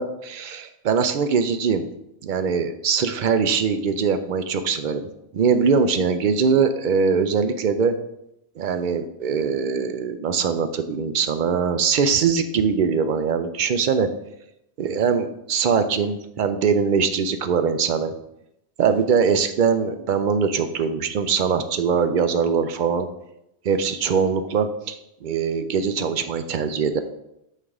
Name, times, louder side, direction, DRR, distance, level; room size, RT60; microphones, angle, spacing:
voice 1, 0.0-1.9 2.2-5.1 5.3-7.9 8.6-14.1 14.8-18.1 18.8-23.1 23.6-25.0 25.2-27.0, right 6 dB, 60° right, 9 dB, 0.5 m, -22 dB
7.4 x 3.3 x 4.7 m, 0.83 s
omnidirectional pair, 1.2 m